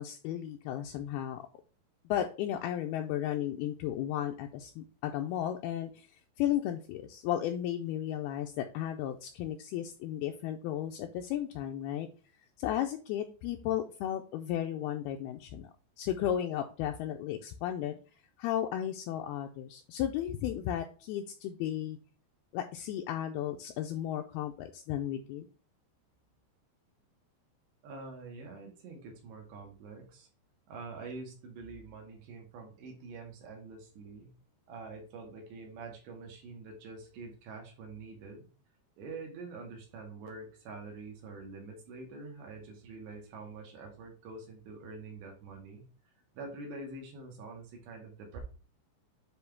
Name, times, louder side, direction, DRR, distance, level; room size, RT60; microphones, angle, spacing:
voice 1, 0.0-1.4 2.1-6.1 6.4-12.1 12.6-15.7 16.0-18.0 18.4-22.0 22.5-25.5, left 11 dB, 85° left, 3 dB, 2.3 m, -34 dB
voice 2, 27.8-30.3 30.7-34.3 34.7-38.5 39.0-45.8 46.3-48.4, right 3 dB, 80° right, 1 dB, 4.0 m, -46 dB
9.7 x 3.8 x 3.5 m, 0.36 s
omnidirectional pair, 5.0 m